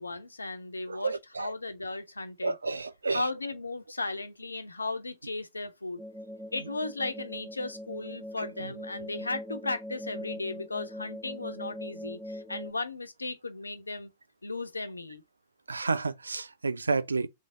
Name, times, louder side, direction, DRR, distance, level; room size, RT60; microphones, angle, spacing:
voice 1, 0.0-2.5 3.1-6.0 6.5-14.1 14.4-15.2, left 3 dB, 85° left, 0.7 m, -36 dB
voice 2, 0.9-1.5 2.4-3.3 8.4-8.7 15.7-17.3, right 4 dB, 80° right, 0.4 m, -31 dB
sound 1, 6.0-12.7, left 1 dB, 5° right, 0.9 m, -41 dB
3.3 x 3.3 x 3.6 m
figure-of-eight pair, 100°, 0 cm